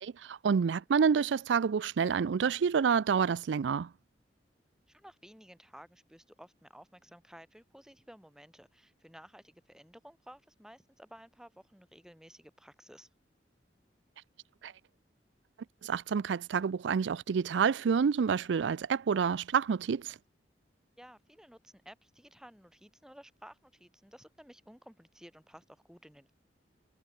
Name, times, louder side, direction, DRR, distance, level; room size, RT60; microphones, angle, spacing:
voice 1, 0.0-3.9 14.6-14.7 15.8-20.2, right 6 dB, 85° right, 0.4 m, -28 dB
voice 2, 4.9-13.1 21.0-26.3, equal, 5° right, 5.1 m, -54 dB
head